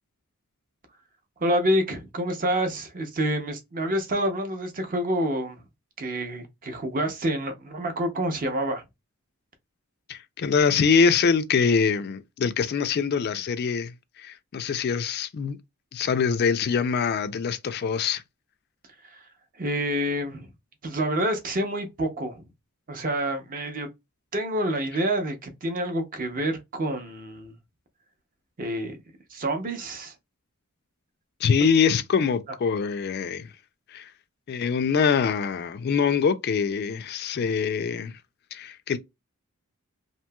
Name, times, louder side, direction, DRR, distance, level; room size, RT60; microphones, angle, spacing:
voice 1, 1.4-5.6 6.0-8.8 19.0-19.2 19.6-20.5 20.8-22.5 22.9-23.9 24.3-27.5 28.6-29.0 29.3-30.1, right 1 dB, 40° right, 0.6 m, -28 dB
voice 2, 10.1-15.6 15.9-18.2 31.4-33.5 33.9-34.1 34.5-38.2 38.5-39.0, left 6 dB, 45° left, 0.3 m, -24 dB
2.9 x 2.7 x 2.2 m
head